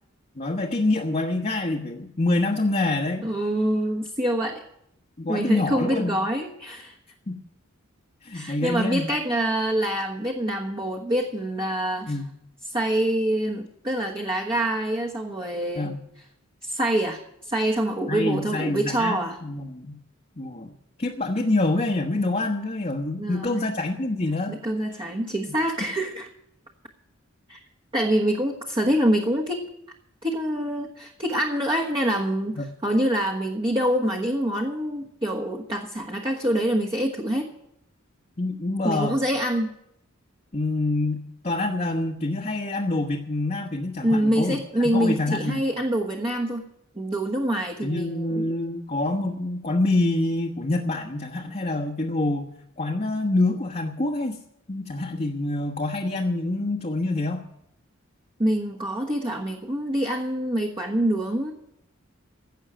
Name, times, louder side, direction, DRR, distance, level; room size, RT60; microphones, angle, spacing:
voice 1, 0.4-3.2 5.2-6.1 7.3-7.4 8.2-9.1 12.1-12.3 15.8-16.0 18.1-20.0 20.4-20.7 21.0-24.6 32.6-32.7 38.4-39.2 40.5-44.6 44.8-45.6 47.8-52.5 52.8-54.4 54.7-57.4, left 2 dB, 35° left, 1 dB, 1.2 m, -26 dB
voice 2, 3.2-4.6 5.3-7.0 8.3-12.1 12.7-15.9 16.6-19.4 23.2-23.7 24.5-26.3 27.5-27.6 27.9-29.6 30.2-37.5 38.8-39.7 44.0-46.6 46.9-48.5 58.4-61.5, right 1 dB, 25° right, 0 dB, 1.3 m, -25 dB
16.5 x 6.4 x 10.0 m, 0.77 s
head